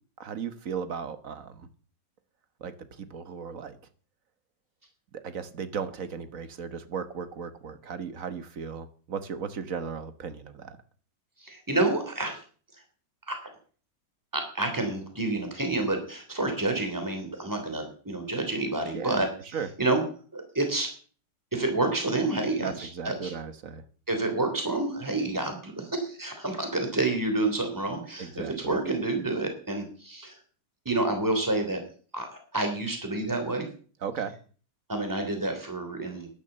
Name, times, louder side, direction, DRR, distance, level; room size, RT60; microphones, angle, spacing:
voice 1, 0.2-1.7 2.6-3.8 5.1-10.8 18.9-19.2 19.5-19.7 22.6-23.8 28.2-28.8 34.0-34.3, right 6 dB, 50° right, 12 dB, 1.5 m, -36 dB
voice 2, 11.4-12.4 13.3-13.4 14.3-19.3 19.8-20.0 20.3-20.9 21.5-23.3 24.1-30.4 30.8-31.8 32.1-32.3 32.5-33.7 34.9-36.3, right 2 dB, 10° right, 5 dB, 3.2 m, -29 dB
12.0 x 11.0 x 6.7 m, 0.42 s
omnidirectional pair, 1.9 m